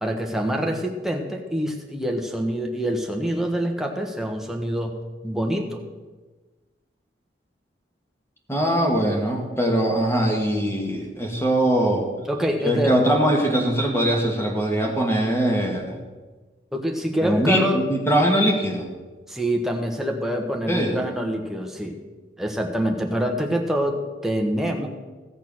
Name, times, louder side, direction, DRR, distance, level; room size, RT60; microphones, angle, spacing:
voice 1, 0.0-5.0 5.2-5.8 12.3-12.9 16.7-17.9 19.3-22.0 22.4-24.9, equal, ahead, 2 dB, 1.2 m, -25 dB
voice 2, 8.5-12.1 12.6-15.9 17.2-18.9 20.7-21.0, right 1 dB, 15° left, 1 dB, 1.9 m, -21 dB
16.0 x 6.5 x 6.4 m, 1.3 s
head